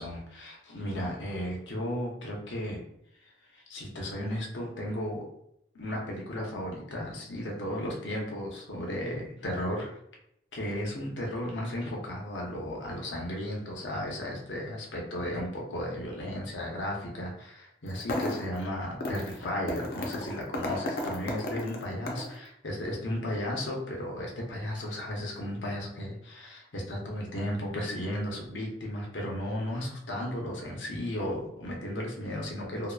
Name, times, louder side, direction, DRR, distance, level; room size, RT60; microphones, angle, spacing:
voice 1, 0.0-2.8 3.2-5.2 5.7-9.9 10.5-32.9, left 1 dB, 90° left, -1 dB, 0.7 m, -35 dB
sound 1, 17.9-18.6 19.0-19.4 19.7-22.4, left 1 dB, 55° left, 0.4 m, -34 dB
2.8 x 2.1 x 2.3 m, 0.76 s
head